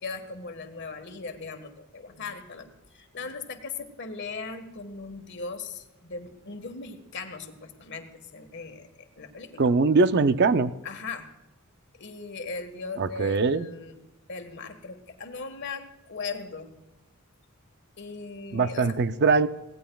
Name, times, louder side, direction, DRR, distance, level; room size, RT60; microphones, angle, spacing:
voice 1, 0.0-9.7 10.8-11.3 11.9-14.0 14.3-16.7 18.0-19.0, left 4 dB, 55° left, 7 dB, 1.5 m, -39 dB
voice 2, 9.6-10.7 13.0-13.7 18.5-19.5, right 4 dB, 50° right, 12 dB, 0.5 m, -22 dB
23.0 x 17.5 x 2.3 m, 1.0 s
head